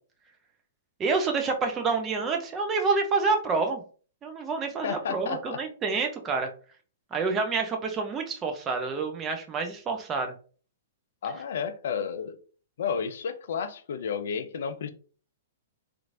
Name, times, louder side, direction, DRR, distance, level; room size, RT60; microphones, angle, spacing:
voice 1, 1.0-3.8 4.2-6.5 7.1-10.3, right 4 dB, 25° right, 0.7 m, -28 dB
voice 2, 4.8-5.6 11.2-12.4 12.8-14.9, left 7 dB, 65° left, 0.4 m, -32 dB
2.9 x 2.6 x 2.6 m
figure-of-eight pair, 115°, 0 cm